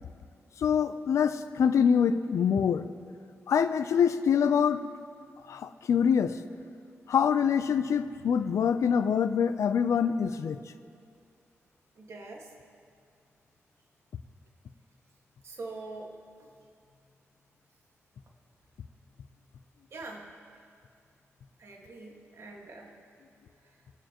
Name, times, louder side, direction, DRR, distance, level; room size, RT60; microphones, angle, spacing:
voice 1, 0.6-2.9 3.5-4.8 5.5-6.4 7.1-10.6, left 7 dB, 85° left, 11 dB, 0.5 m, -25 dB
voice 2, 11.9-12.5 15.4-16.5 19.9-20.3 21.6-23.0 23.6-23.8, right 3 dB, 65° right, 0 dB, 1.7 m, -44 dB
21.5 x 8.9 x 3.0 m, 2.3 s
wide cardioid pair, 105°, 5 cm